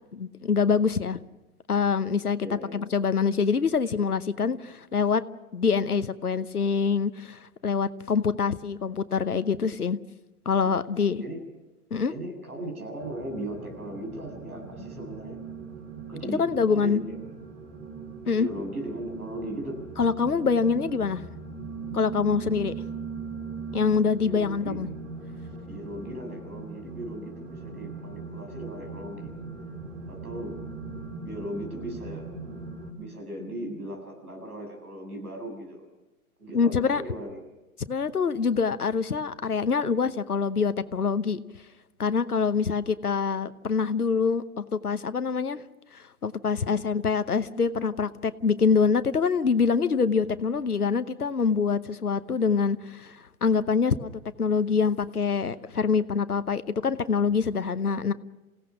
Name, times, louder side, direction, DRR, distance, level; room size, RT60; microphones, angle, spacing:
voice 1, 0.1-1.2 1.7-2.4 2.7-5.2 5.5-10.0 10.4-11.2 11.9-12.1 16.4-17.0 18.3-18.5 20.0-21.3 21.9-22.7 23.7-24.9 36.5-37.0 37.9-41.4 42.0-45.6 45.9-54.1 54.4-58.1, left 5 dB, 90° left, 13 dB, 1.0 m, -25 dB
voice 2, 2.4-2.8 4.5-4.6 10.6-10.7 11.2-11.4 12.1-15.4 16.1-16.4 16.7-17.2 18.3-19.8 24.2-24.8 25.7-29.3 30.1-30.5 31.2-32.2 33.0-35.8 36.4-37.4, right 1 dB, 85° right, 2 dB, 7.8 m, -37 dB
sound 1, 13.0-32.9, right 4 dB, 65° right, 5.3 m, -39 dB
28.5 x 17.0 x 6.2 m, 1.1 s
figure-of-eight pair, 115°, 44 cm